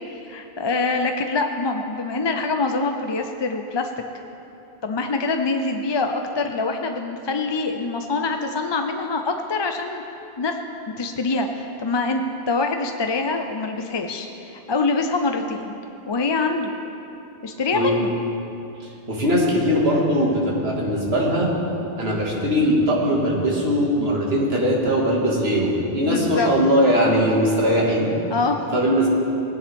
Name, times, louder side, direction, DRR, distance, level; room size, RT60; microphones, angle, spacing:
voice 1, 0.1-3.9 4.8-10.0 10.4-10.6 11.0-15.8 16.1-16.7 17.4-18.1 26.0-26.5 28.3-28.8, left 3 dB, 35° left, 5 dB, 0.4 m, -25 dB
voice 2, 18.8-21.5 22.0-28.1 28.7-29.1, equal, 80° right, -3 dB, 2.1 m, -20 dB
18.0 x 10.0 x 3.5 m, 2.9 s
omnidirectional pair, 1.0 m